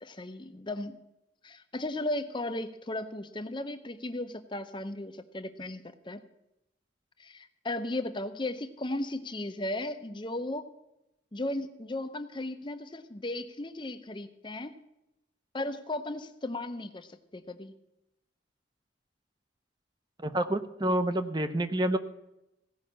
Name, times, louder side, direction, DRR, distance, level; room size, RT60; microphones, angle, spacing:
voice 1, 0.0-1.0 1.4-6.2 7.2-10.7 11.3-14.7 15.5-17.7, left 1 dB, 25° left, 9 dB, 0.6 m, -36 dB
voice 2, 20.2-22.0, right 1 dB, 20° right, 10 dB, 0.7 m, -28 dB
16.5 x 5.6 x 8.3 m, 0.89 s
head